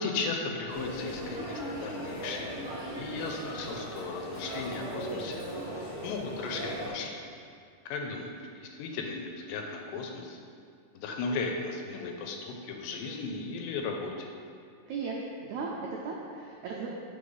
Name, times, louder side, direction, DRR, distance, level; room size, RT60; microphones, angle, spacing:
voice 1, 0.0-2.6 2.9-7.2 7.9-10.4 10.9-14.3, left 4 dB, 80° left, 2 dB, 2.2 m, -36 dB
sound 1, 0.7-6.9, equal, 40° right, 1.3 m, -38 dB
voice 2, 15.4-16.9, right 5 dB, 85° right, -3 dB, 1.6 m, -36 dB
4.9 x 3.9 x 5.4 m, 2.2 s
omnidirectional pair, 4.0 m